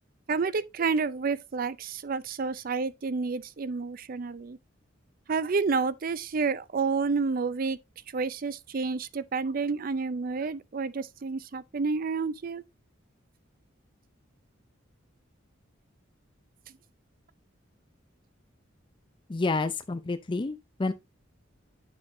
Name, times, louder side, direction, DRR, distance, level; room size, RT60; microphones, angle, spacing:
voice 1, 0.3-4.6 5.3-7.8 8.1-12.6, right 4 dB, 45° right, 0.5 m, -29 dB
voice 2, 19.3-20.9, left 3 dB, 25° left, 0.4 m, -29 dB
8.8 x 6.5 x 2.7 m
head